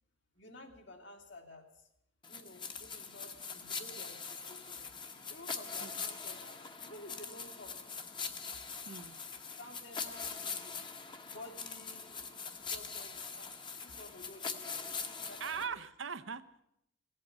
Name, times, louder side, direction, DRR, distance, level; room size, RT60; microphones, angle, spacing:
voice 1, 0.3-1.9 2.3-4.9 5.3-7.8 9.6-10.8 11.2-15.8, left 1 dB, 65° left, 2 dB, 2.5 m, -53 dB
sound 1, 2.2-15.7, left 5 dB, 25° left, 1.1 m, -42 dB
voice 2, 8.9-9.2 15.4-16.6, right 6 dB, 75° right, 11 dB, 0.8 m, -41 dB
17.0 x 8.5 x 9.8 m, 0.76 s
head